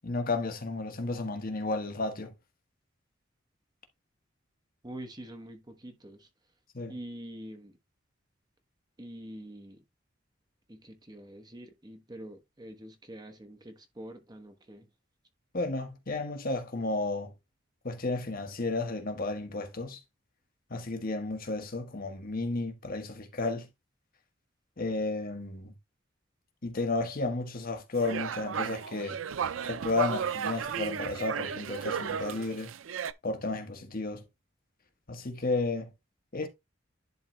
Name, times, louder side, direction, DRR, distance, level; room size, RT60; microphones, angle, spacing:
voice 1, 0.0-2.3 6.7-6.9 15.5-17.3 17.8-20.0 20.7-23.7 24.8-25.7 26.6-29.2 29.6-32.7 33.2-34.2 35.1-35.9 36.3-36.5, left 3 dB, 50° left, 1.3 m, -32 dB
voice 2, 4.8-6.3 6.9-7.8 9.0-9.8 10.7-14.9, right 1 dB, 20° right, 1.2 m, -45 dB
sound 1, 28.0-33.1, right 7 dB, 85° right, 0.5 m, -34 dB
11.0 x 3.8 x 3.1 m
head